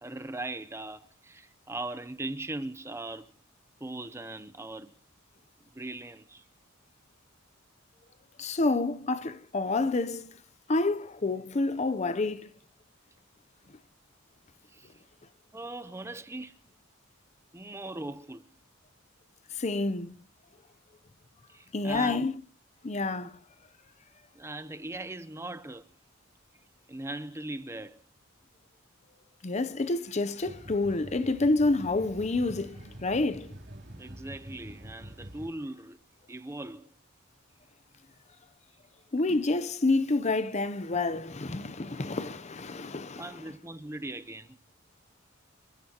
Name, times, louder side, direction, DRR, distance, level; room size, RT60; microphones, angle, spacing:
voice 1, 0.0-3.3 3.8-4.9 5.7-6.4 14.7-14.9 15.5-16.6 17.5-18.5 21.5-22.3 24.3-25.8 26.9-28.0 34.0-36.0 36.3-36.9 43.2-44.6, right 2 dB, 15° right, 0.7 m, -39 dB
voice 2, 8.4-10.3 10.7-12.5 19.5-20.2 21.7-22.3 22.8-23.3 29.4-33.5 39.1-43.3, left 2 dB, 35° left, 0.6 m, -28 dB
sound 1, 30.4-35.5, right 1 dB, 55° right, 3.2 m, -46 dB
28.5 x 14.5 x 2.9 m
head